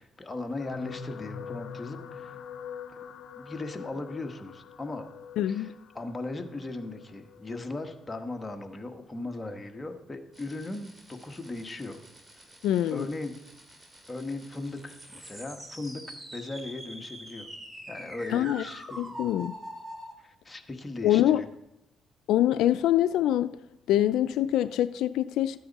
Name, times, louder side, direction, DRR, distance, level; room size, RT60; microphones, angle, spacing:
voice 1, 0.0-2.4 3.4-5.1 5.4-12.0 12.9-13.4 14.1-17.5 17.9-19.2 20.2-21.4, left 2 dB, 20° left, 1.4 m, -38 dB
sound 1, 0.6-9.0 9.8-10.0 10.3-10.4, left 7 dB, 65° left, 0.8 m, -44 dB
voice 2, 5.4-5.7 12.6-13.1 18.3-18.6 19.0-19.5 21.0-21.4 22.3-23.5 23.9-25.6, left 12 dB, 85° left, 0.3 m, -24 dB
sound 2, 10.3-20.1, right 1 dB, 20° right, 2.3 m, -45 dB
13.0 x 9.4 x 4.1 m
cardioid pair, 90°, 0 cm